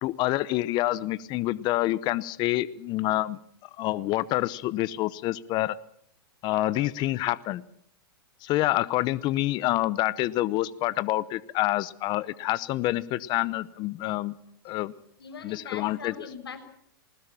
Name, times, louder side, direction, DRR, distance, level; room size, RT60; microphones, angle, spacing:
voice 1, 0.0-5.8 6.4-7.6 8.4-14.4 14.6-14.9 15.4-16.1, left 16 dB, 35° left, 18 dB, 0.8 m, -27 dB
voice 2, 15.2-16.6, left 5 dB, 90° left, 7 dB, 5.7 m, -41 dB
20.0 x 20.0 x 7.4 m, 0.69 s
hypercardioid pair, 120°, 13 cm